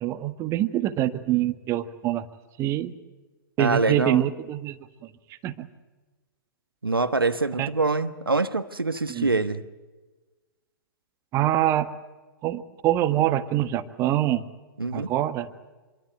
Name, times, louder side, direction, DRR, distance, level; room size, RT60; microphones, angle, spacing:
voice 1, 0.0-2.2 2.6-2.9 3.6-4.8 5.4-5.7 7.6-7.7 9.1-9.3 11.3-11.9 12.4-14.4 14.9-15.5, right 13 dB, 25° right, 1.4 m, -25 dB
voice 2, 3.6-4.2 6.8-9.6 14.8-15.1, right 3 dB, 80° right, 1.3 m, -25 dB
26.5 x 23.0 x 8.1 m
figure-of-eight pair, 115°, 12 cm